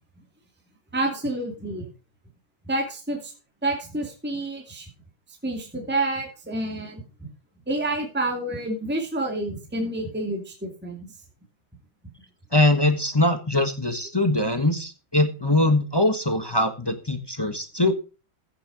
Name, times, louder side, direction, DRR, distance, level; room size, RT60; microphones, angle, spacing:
voice 1, 0.9-1.9 2.7-3.3 3.6-4.9 5.4-7.0 7.7-11.1, right 2 dB, 5° right, 2 dB, 2.4 m, -28 dB
voice 2, 12.5-17.9, left 1 dB, 15° left, 7 dB, 1.1 m, -22 dB
15.5 x 6.8 x 5.0 m, 0.34 s
omnidirectional pair, 2.3 m